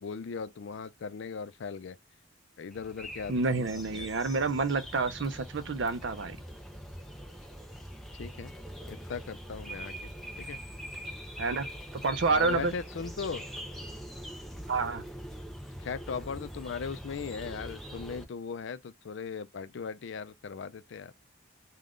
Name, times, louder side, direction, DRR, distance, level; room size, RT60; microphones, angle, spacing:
voice 1, 0.0-2.0 2.6-3.7 3.9-4.1 8.1-8.5 8.9-10.1 10.4-10.6 12.3-13.4 15.8-21.1, left 5 dB, 60° left, 0.4 m, -38 dB
sound 1, 2.7-18.2, equal, ahead, 0.5 m, -43 dB
voice 2, 3.3-6.4 11.4-11.7 11.9-12.7 14.7-15.0, right 4 dB, 60° right, 0.5 m, -29 dB
3.5 x 2.3 x 2.4 m
head